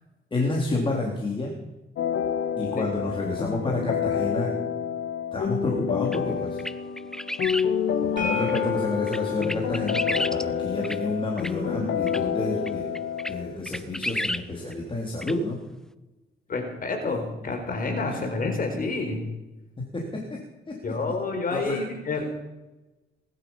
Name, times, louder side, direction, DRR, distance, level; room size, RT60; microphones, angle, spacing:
voice 1, 0.3-1.5 2.6-4.5 5.3-6.6 8.0-12.9 13.3-15.6 17.1-17.2 17.4-17.5 18.1-18.2 19.8-20.4 20.7-20.8 21.5-21.8, left 2 dB, 25° left, -1 dB, 3.6 m, -29 dB
sound 1, 2.0-13.6, left 8 dB, 70° left, 1.4 m, -28 dB
voice 2, 2.7-3.1 16.5-19.2 20.8-22.2, left 3 dB, 45° left, 4 dB, 4.2 m, -29 dB
sound 2, 6.1-6.2 6.6-7.7 8.5-8.6 9.1-10.4 10.8-11.0 11.4-11.5 12.1-12.2 12.7-12.8 12.9-13.3 13.6-14.4 14.7-14.8 15.2-15.3, equal, 5° left, 0.7 m, -31 dB
sound 3, 8.2-14.0, left 7 dB, 45° right, 6.3 m, -36 dB
20.0 x 12.0 x 5.7 m, 1.1 s
cardioid pair, 90°, 20 cm